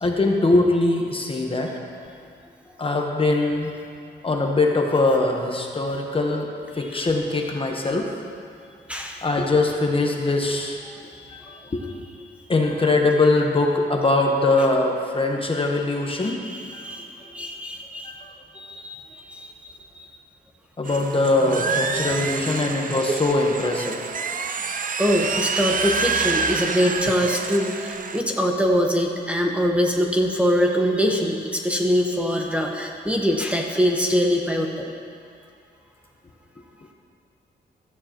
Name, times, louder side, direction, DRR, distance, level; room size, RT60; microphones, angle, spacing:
voice 1, 0.0-1.7 2.8-3.7 4.2-6.5 6.7-8.1 9.2-10.8 11.3-11.9 12.5-16.4 16.7-16.8 18.0-18.3 20.8-24.0, left 2 dB, 30° left, 1 dB, 1.1 m, -22 dB
voice 2, 8.9-9.2 11.4-11.5 16.2-18.2 18.5-20.0 25.0-34.9, equal, 5° right, 0 dB, 1.1 m, -23 dB
sound 1, 20.8-28.2, right 5 dB, 45° right, 0.6 m, -27 dB
16.0 x 13.5 x 3.0 m, 2.3 s
wide cardioid pair, 120°, 19 cm